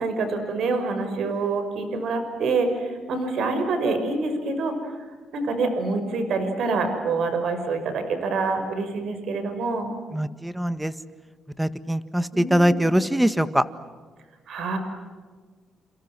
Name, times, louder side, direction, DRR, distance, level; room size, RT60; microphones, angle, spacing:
voice 1, 0.0-4.9 5.3-9.9 12.3-12.8 14.5-14.8, right 3 dB, 70° right, 7 dB, 5.9 m, -26 dB
voice 2, 10.1-10.9 11.6-13.6, equal, 5° right, 12 dB, 1.7 m, -22 dB
29.5 x 29.0 x 6.2 m, 1.5 s
cardioid pair, 90°, 0 cm